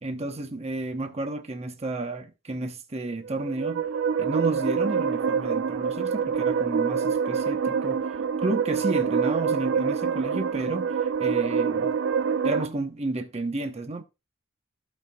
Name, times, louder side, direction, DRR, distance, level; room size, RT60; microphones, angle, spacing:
voice 1, 0.0-3.8 4.2-11.9 12.4-14.0, right 2 dB, 30° right, 0.9 m, -31 dB
sound 1, 3.2-12.7, right 6 dB, 65° right, 0.4 m, -26 dB
15.0 x 5.5 x 2.3 m
head